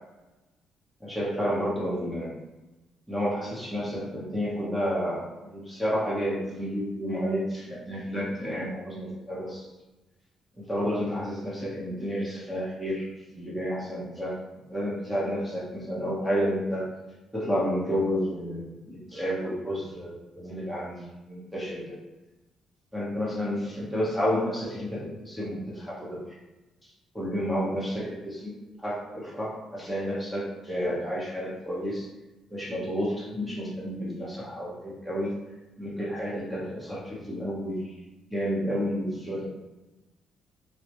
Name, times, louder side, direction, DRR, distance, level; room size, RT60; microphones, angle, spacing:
voice 1, 1.0-2.3 3.1-9.6 10.6-14.4 14.7-16.9 17.3-22.0 22.9-26.2 27.1-28.5 28.8-32.1 32.5-35.3 35.8-37.9 38.3-39.5, equal, 5° left, -7 dB, 0.8 m, -31 dB
2.2 x 2.0 x 2.8 m, 1.1 s
cardioid pair, 95°, 0 cm